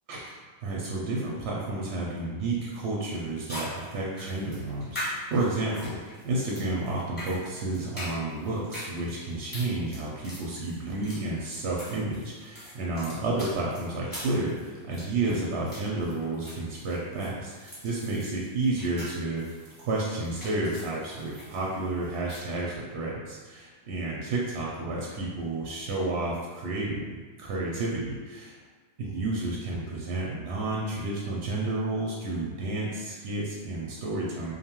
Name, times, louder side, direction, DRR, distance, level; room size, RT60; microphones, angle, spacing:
voice 1, 0.1-19.4 19.8-27.0 27.4-28.6 29.0-34.5, right 2 dB, 65° right, -4 dB, 0.7 m, -31 dB
sound 1, 2.8-2.9 3.5-22.4, left 1 dB, 10° left, 0.8 m, -42 dB
2.7 x 2.3 x 2.9 m, 1.4 s
omnidirectional pair, 1.4 m